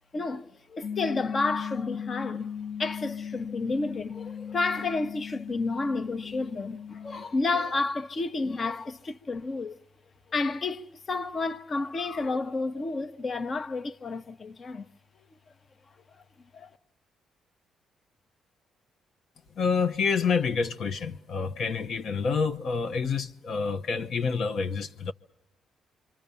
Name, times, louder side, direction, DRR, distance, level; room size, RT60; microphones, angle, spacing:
voice 1, 0.1-2.5 2.8-9.8 10.3-14.9 16.5-16.7, left 3 dB, 40° left, 1.1 m, -31 dB
sound 1, 0.8-7.2, left 7 dB, 80° left, 1.5 m, -37 dB
voice 2, 19.6-25.1, left 5 dB, 60° left, 1.0 m, -28 dB
26.5 x 24.5 x 7.0 m
cardioid pair, 90°, 0 cm